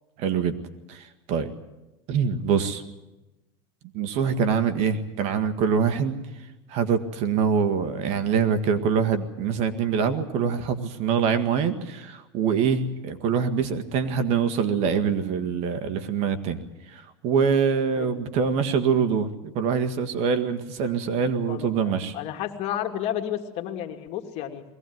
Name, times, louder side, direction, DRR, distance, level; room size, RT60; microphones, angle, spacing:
voice 1, 0.2-0.5 0.9-1.5 2.1-2.8 3.9-6.2 6.7-16.6 16.9-22.1, right 6 dB, 55° right, 10 dB, 1.9 m, -24 dB
voice 2, 21.5-24.6, left 11 dB, 50° left, 5 dB, 2.3 m, -32 dB
21.5 x 17.5 x 9.5 m, 1.0 s
supercardioid pair, 125°, 14 cm